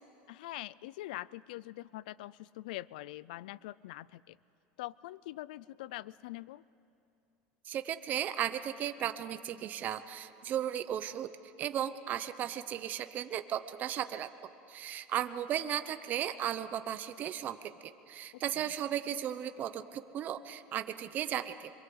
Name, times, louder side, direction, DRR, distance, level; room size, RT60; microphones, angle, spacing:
voice 1, 0.3-4.4 4.8-6.6 18.3-18.6, left 17 dB, 90° left, 21 dB, 0.5 m, -44 dB
voice 2, 7.7-11.3 11.6-14.3 14.7-17.7 18.1-21.7, right 10 dB, 40° right, 10 dB, 0.9 m, -35 dB
25.5 x 23.0 x 8.0 m, 2.7 s
supercardioid pair, 130°, 4 cm